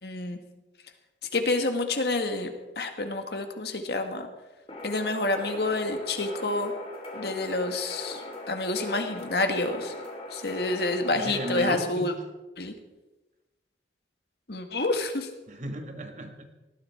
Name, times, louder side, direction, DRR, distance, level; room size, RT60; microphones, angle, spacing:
voice 1, 0.0-0.4 1.3-4.3 4.8-6.7 7.1-8.2 8.5-9.9 10.3-12.1 12.6-12.7 14.5-15.3, left 2 dB, 65° left, 6 dB, 1.8 m, -28 dB
sound 1, 4.7-11.5, left 1 dB, 30° left, 3.1 m, -40 dB
voice 2, 11.1-12.1 15.5-16.5, right 1 dB, 40° right, 5 dB, 1.7 m, -34 dB
19.0 x 14.0 x 4.5 m, 1.1 s
head